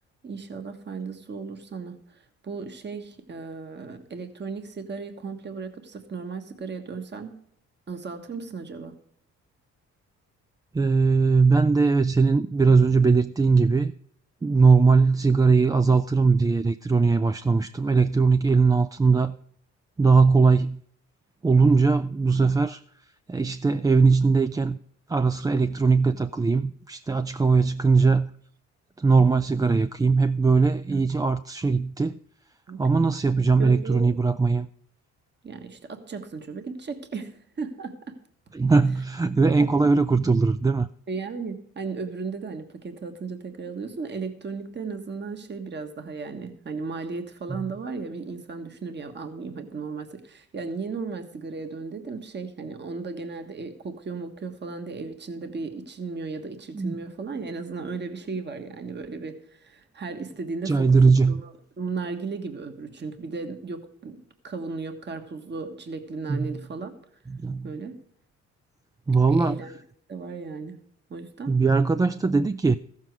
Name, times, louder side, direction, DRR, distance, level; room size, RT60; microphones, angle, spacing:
voice 1, 0.2-7.4 7.9-8.9 30.9-31.0 32.7-32.8 33.4-34.1 35.4-38.2 39.8-39.9 41.1-61.0 61.3-66.9 67.6-67.9 69.3-69.7 70.1-70.8 71.1-71.6, right 4 dB, 35° right, 1.5 m, -35 dB
voice 2, 10.7-13.9 14.4-19.4 20.0-20.8 21.4-22.8 23.3-24.8 25.1-28.3 29.0-32.2 32.8-34.7 38.5-40.9 47.5-47.7 56.7-57.0 60.7-61.4 66.3-66.6 67.3-67.7 69.1-69.6 71.5-72.8, right 4 dB, 15° right, 0.3 m, -20 dB
14.5 x 7.5 x 4.6 m
cardioid pair, 90°, 30 cm